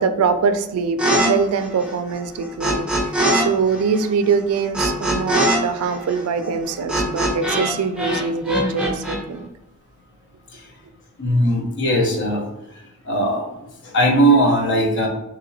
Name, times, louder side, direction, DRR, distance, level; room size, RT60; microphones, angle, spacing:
voice 1, 0.0-9.5, right 5 dB, 75° right, 9 dB, 0.3 m, -23 dB
sound 1, 1.0-1.3 1.5-3.4 3.7-7.7 8.0-9.2, right 1 dB, 5° right, 0.5 m, -22 dB
voice 2, 11.2-12.5 13.1-13.5 13.8-15.1, right 1 dB, 55° left, 0 dB, 0.6 m, -18 dB
3.0 x 2.8 x 2.6 m, 0.89 s
head